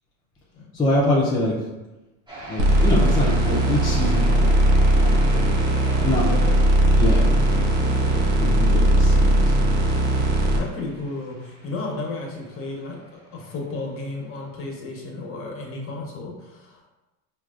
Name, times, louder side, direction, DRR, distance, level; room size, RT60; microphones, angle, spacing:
voice 1, 0.7-1.5 2.5-4.6 4.9-5.6 6.0-6.3 7.0-10.0, left 1 dB, 10° left, -6 dB, 0.4 m, -25 dB
sound 1, 2.3-13.7, right 1 dB, 10° right, 1.0 m, -41 dB
sound 2, 2.6-10.6, right 1 dB, 70° right, 0.9 m, -18 dB
voice 2, 6.0-6.6 10.1-16.9, left 2 dB, 30° left, -1 dB, 0.9 m, -33 dB
4.5 x 2.4 x 2.4 m, 1.1 s
supercardioid pair, 110°, 43 cm